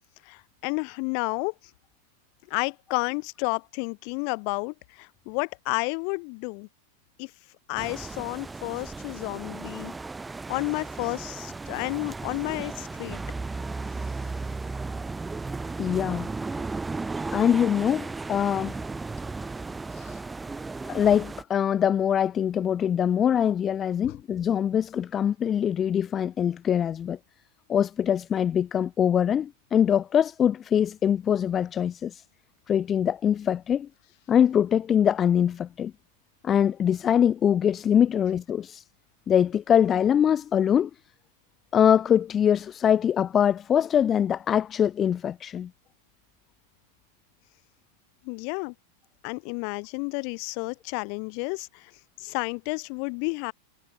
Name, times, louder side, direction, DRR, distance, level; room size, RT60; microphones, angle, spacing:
voice 1, 0.3-1.5 2.5-6.7 7.2-7.3 7.7-9.9 10.5-13.2 20.0-20.1 24.0-24.2 48.2-48.7 49.2-51.9 52.2-53.5, left 40 dB or more, 55° left, 2.6 m, -31 dB
sound 1, 7.8-21.4, right 3 dB, 10° right, 2.0 m, -35 dB
voice 2, 15.8-16.3 17.3-18.7 20.9-27.2 27.7-32.2 32.7-33.9 34.3-35.9 36.4-38.8 39.3-40.9 41.7-45.7, left 9 dB, 30° left, 0.4 m, -23 dB
hypercardioid pair, 105°, 0 cm